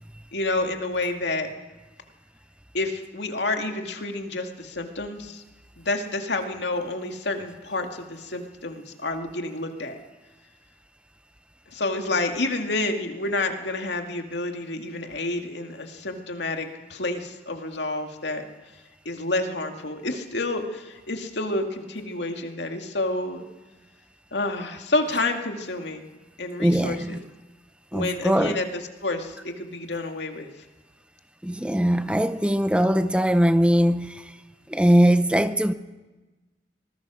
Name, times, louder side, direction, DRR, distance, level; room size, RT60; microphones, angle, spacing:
voice 1, 0.3-1.5 2.7-5.4 5.8-10.0 11.7-18.4 19.1-23.4 24.3-26.1 26.4-27.2 27.9-28.6 29.0-30.5, left 2 dB, 85° left, 2.3 m, -29 dB
voice 2, 26.6-27.2 27.9-28.6 31.4-34.4 34.7-35.7, equal, 5° right, 0.6 m, -21 dB
25.0 x 20.0 x 6.3 m
head